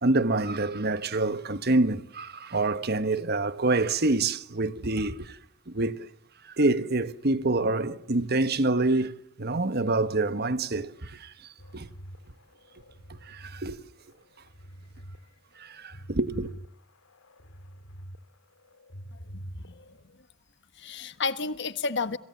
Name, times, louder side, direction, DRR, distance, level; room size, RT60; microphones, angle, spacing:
voice 1, 0.0-5.4 5.7-6.1 6.4-9.1 9.4-11.9 13.1-13.8 15.6-16.5, right 2 dB, 50° right, 1.3 m, -27 dB
sound 1, 11.6-13.7 14.1-15.2 15.6-18.2 18.5-20.0, equal, 80° left, 2.4 m, -45 dB
voice 2, 19.3-19.8 20.8-22.2, left 4 dB, 60° left, 1.4 m, -31 dB
29.0 x 26.0 x 7.2 m
head